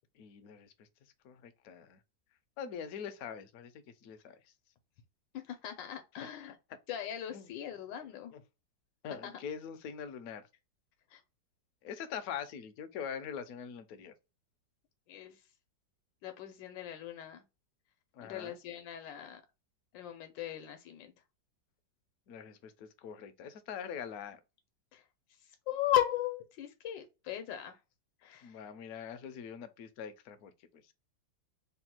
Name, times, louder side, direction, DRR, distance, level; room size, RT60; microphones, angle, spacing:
voice 1, 0.2-0.9 1.2-2.0 2.6-4.4 6.2-6.5 7.3-7.5 8.3-8.4 9.0-10.5 11.8-14.1 18.1-18.6 22.3-24.4 28.4-30.9, left 7 dB, 65° left, 0.9 m, -43 dB
voice 2, 5.5-6.6 6.9-8.3 9.2-9.4 11.1-11.2 15.1-15.4 16.2-17.4 18.2-19.4 19.9-21.1 24.9-25.0 25.7-27.8 28.2-28.6, left 12 dB, 85° left, 1.4 m, -37 dB
3.4 x 2.2 x 4.2 m
omnidirectional pair, 1.9 m